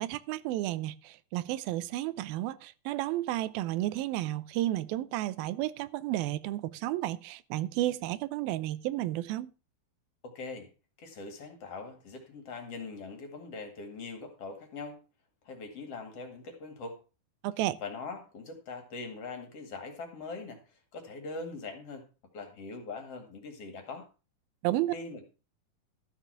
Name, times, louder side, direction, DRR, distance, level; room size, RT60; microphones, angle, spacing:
voice 1, 0.0-9.5 17.4-17.8 24.6-24.9, right 15 dB, 90° right, 2.5 m, -32 dB
voice 2, 10.2-10.7 11.0-15.0 15.4-17.0 17.8-22.1 22.3-24.1 24.9-25.2, left 3 dB, 45° left, 2.8 m, -42 dB
13.5 x 6.3 x 5.7 m
omnidirectional pair, 4.1 m